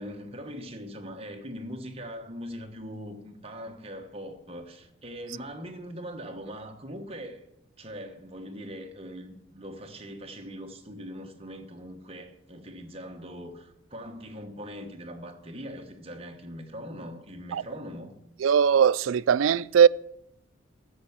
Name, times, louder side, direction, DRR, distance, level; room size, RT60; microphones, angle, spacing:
voice 1, 0.0-7.4 7.8-18.2, equal, 30° right, 1.2 m, -41 dB
voice 2, 18.4-19.9, right 7 dB, 85° right, 0.3 m, -20 dB
13.0 x 6.7 x 7.2 m
head